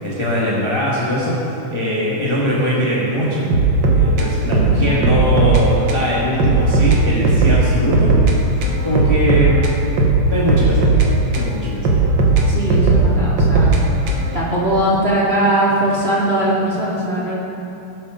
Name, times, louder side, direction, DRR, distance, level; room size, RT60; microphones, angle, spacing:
voice 1, 0.0-1.4 1.7-3.5 3.9-8.2 8.8-9.7 10.3-10.9 11.3-12.0, equal, 15° left, -7 dB, 1.2 m, -20 dB
sound 1, 3.5-5.6 5.9-6.0 6.4-8.3 8.6-11.5 11.8-14.4, right 3 dB, 60° right, 1.1 m, -16 dB
voice 2, 4.5-4.9 12.5-13.8 14.3-17.4, right 1 dB, 20° right, -7 dB, 2.3 m, -19 dB
19.0 x 8.8 x 3.9 m, 3.0 s
omnidirectional pair, 3.7 m